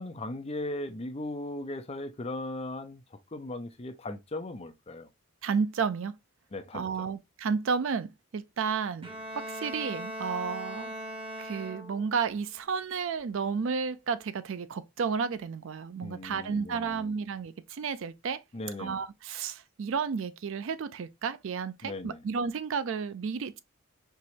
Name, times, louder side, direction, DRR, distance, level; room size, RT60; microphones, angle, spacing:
voice 1, 0.0-3.0 3.3-5.1 6.5-7.1 16.0-17.2 18.5-19.0 21.8-22.2, left 2 dB, 30° left, 0.5 m, -38 dB
voice 2, 5.4-6.1 6.7-9.1 9.4-10.9 11.4-18.4 18.8-23.6, right 5 dB, 60° right, 0.4 m, -32 dB
Bowed string instrument, 9.0-12.2, equal, 25° right, 1.1 m, -39 dB
4.6 x 3.0 x 2.8 m
head